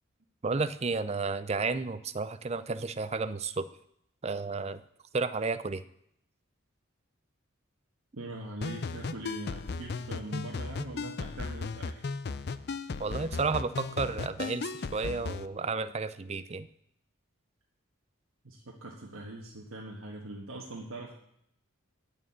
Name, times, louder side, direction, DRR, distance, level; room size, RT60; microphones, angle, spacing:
voice 1, 0.4-3.6 4.2-4.8 5.1-5.8 13.0-16.7, right 4 dB, 30° right, 13 dB, 0.5 m, -32 dB
voice 2, 8.1-12.0 18.4-21.1, right 2 dB, 85° right, -2 dB, 1.5 m, -42 dB
sound 1, 8.6-15.5, left 4 dB, 50° left, 0.5 m, -36 dB
9.1 x 6.9 x 8.6 m, 0.73 s
head